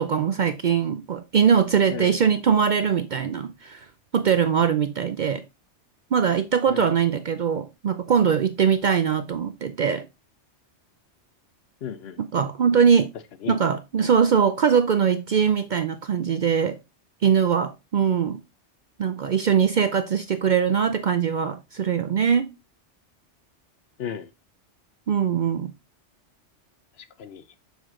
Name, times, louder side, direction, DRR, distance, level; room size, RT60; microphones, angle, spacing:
voice 1, 0.0-3.9 4.1-5.4 6.1-10.1 12.2-13.1 13.5-16.8 17.2-18.4 19.0-22.5 25.1-25.7, right 7 dB, 60° right, 0.5 m, -22 dB
voice 2, 11.8-12.2 13.4-13.7 24.0-24.3 27.0-27.6, left 8 dB, 65° left, 0.8 m, -35 dB
6.6 x 4.6 x 3.7 m
omnidirectional pair, 1.2 m